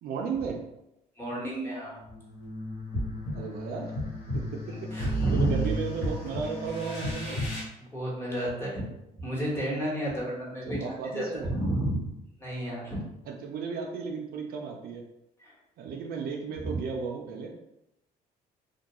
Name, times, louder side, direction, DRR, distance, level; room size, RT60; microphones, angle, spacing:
voice 1, 0.0-0.6 3.3-4.0 4.3-7.4 10.7-11.5 13.3-15.1 15.8-17.6, right 5 dB, 65° right, 2 dB, 0.4 m, -35 dB
voice 2, 1.2-1.9 4.7-5.6 7.8-8.8 9.2-12.1 12.4-13.0 15.4-15.5 16.6-16.8, right 1 dB, 15° left, -5 dB, 1.1 m, -31 dB
sound 1, 1.8-7.6, equal, 70° left, 1.1 m, -32 dB
2.3 x 2.2 x 2.9 m, 0.86 s
cardioid pair, 110°, 17 cm